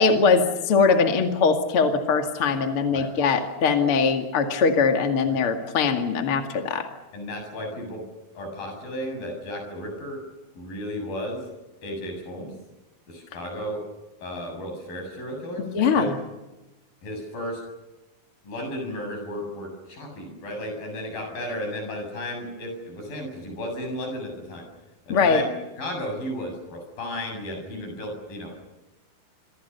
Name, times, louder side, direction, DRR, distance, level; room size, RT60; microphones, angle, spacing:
voice 1, 0.0-6.9 15.7-16.2 25.1-25.4, left 5 dB, 40° left, 5 dB, 2.6 m, -21 dB
voice 2, 7.1-8.0 8.3-10.2 10.6-11.4 11.8-12.5 13.1-13.8 14.2-16.1 17.0-17.6 18.4-24.7 25.1-25.5 25.8-28.5, left 1 dB, 70° left, 4 dB, 9.2 m, -34 dB
27.5 x 24.5 x 7.0 m, 1.0 s
omnidirectional pair, 4.2 m